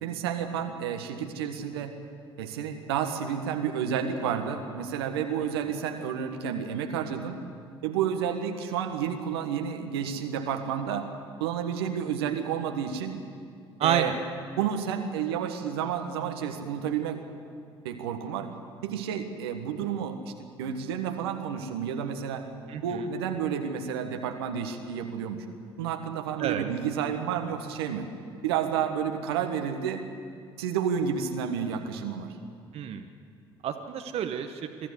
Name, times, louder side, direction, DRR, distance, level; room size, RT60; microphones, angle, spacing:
voice 1, 0.0-2.0 2.4-7.4 7.8-11.1 11.4-13.2 13.8-14.1 14.6-17.2 17.8-18.5 18.8-20.2 20.6-22.4 22.8-25.4 25.8-28.1 28.4-30.0 30.6-32.3, right 8 dB, 75° right, 5 dB, 1.4 m, -30 dB
voice 2, 13.8-14.1 22.7-23.0 26.4-26.6 32.7-33.1 33.6-34.6, right 9 dB, 50° right, 6 dB, 1.1 m, -29 dB
23.5 x 13.5 x 8.3 m, 2.3 s
hypercardioid pair, 60°, 13 cm